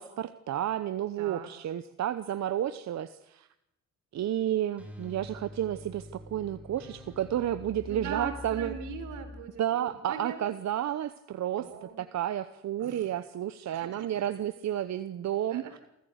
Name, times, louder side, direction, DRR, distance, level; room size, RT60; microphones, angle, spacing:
voice 1, 0.0-3.5 4.1-8.7 9.6-15.6, right 11 dB, 60° right, 12 dB, 1.0 m, -31 dB
voice 2, 1.2-1.5 7.9-10.4 11.6-12.1 12.8-13.1 13.7-14.1 15.5-15.8, right 6 dB, 85° right, 7 dB, 4.3 m, -40 dB
sound 1, 4.3-9.4, left 1 dB, 5° right, 7.1 m, -45 dB
27.0 x 15.0 x 8.2 m, 0.81 s
cardioid pair, 90°, 30 cm